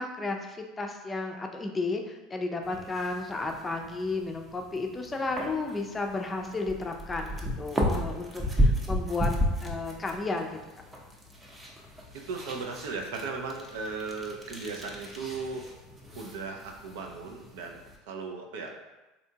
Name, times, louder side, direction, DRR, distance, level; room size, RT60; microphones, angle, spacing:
voice 1, 0.0-9.3 9.6-10.6, left 3 dB, 20° left, 3 dB, 0.4 m, -33 dB
sound 1, 2.6-18.0, equal, 20° right, 0.7 m, -34 dB
voice 2, 12.1-15.6 16.1-17.8 18.1-18.7, right 4 dB, 80° right, 2 dB, 0.5 m, -37 dB
3.3 x 2.7 x 2.8 m, 1.1 s
hypercardioid pair, 95°, 0 cm